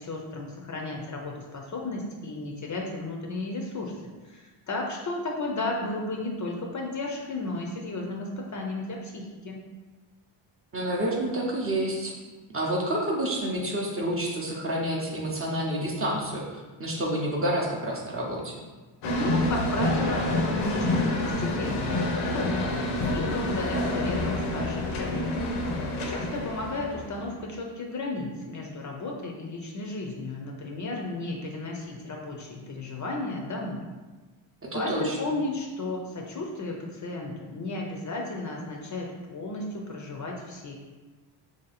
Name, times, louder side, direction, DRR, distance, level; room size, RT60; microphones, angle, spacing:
voice 1, 0.0-3.9 4.2-9.6 19.1-22.0 22.2-22.8 23.1-25.2 26.0-33.9 34.7-40.7, left 2 dB, 40° left, 0 dB, 0.5 m, -34 dB
voice 2, 10.7-12.1 12.5-18.6 34.7-35.2, right 1 dB, 30° right, -2 dB, 0.6 m, -29 dB
sound 1, 19.0-27.3, left 1 dB, 90° left, 0.7 m, -28 dB
3.1 x 2.7 x 4.0 m, 1.2 s
cardioid pair, 125°, 50 cm